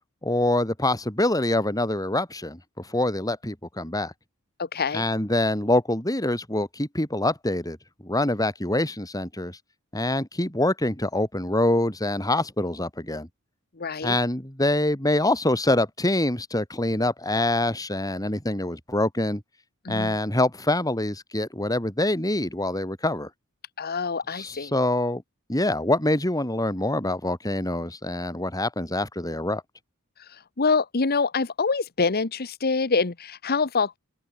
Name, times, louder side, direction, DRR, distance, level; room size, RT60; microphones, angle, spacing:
voice 1, 0.2-4.1 4.9-7.8 8.0-9.6 9.9-13.3 14.0-19.4 19.9-23.3 24.3-25.2 25.5-29.6, left 1 dB, 15° left, 4.8 m, -25 dB
voice 2, 4.6-5.0 13.8-14.2 19.8-20.1 23.8-24.7 30.2-34.0, left 4 dB, 45° left, 1.0 m, -25 dB
open air
head